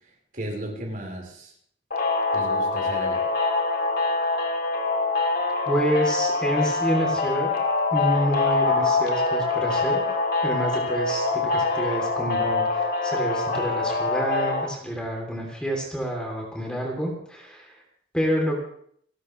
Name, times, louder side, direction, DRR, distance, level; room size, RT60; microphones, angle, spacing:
voice 1, 0.3-1.5 2.3-3.2, right 1 dB, 45° right, -1 dB, 4.9 m, -34 dB
sound 1, 1.9-14.7, left 3 dB, 50° left, 2.1 m, -24 dB
voice 2, 5.7-7.5 7.9-10.0 10.4-17.8 18.1-18.6, equal, 5° left, 0 dB, 3.3 m, -28 dB
29.5 x 12.5 x 3.4 m, 0.64 s
head